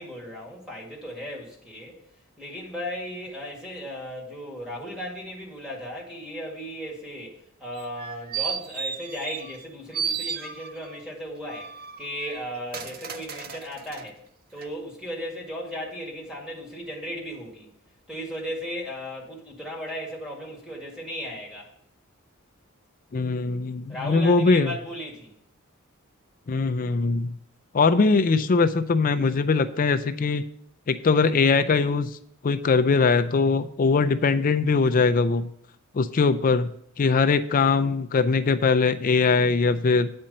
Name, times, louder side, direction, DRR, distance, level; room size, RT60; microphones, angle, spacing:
voice 1, 0.0-2.0 2.4-11.7 12.0-14.2 14.5-17.7 18.1-21.7 23.9-25.3, equal, 5° right, -4 dB, 1.9 m, -36 dB
sound 1, 7.8-9.7 9.9-11.0 11.5-14.1 14.6-14.7, right 7 dB, 45° right, 0.5 m, -34 dB
voice 2, 23.1-24.7 26.5-27.4 27.7-30.4 30.9-32.2 32.4-35.5 35.9-36.7 37.0-40.1, left 4 dB, 40° left, 11 dB, 0.4 m, -21 dB
8.6 x 4.4 x 6.5 m, 0.68 s
head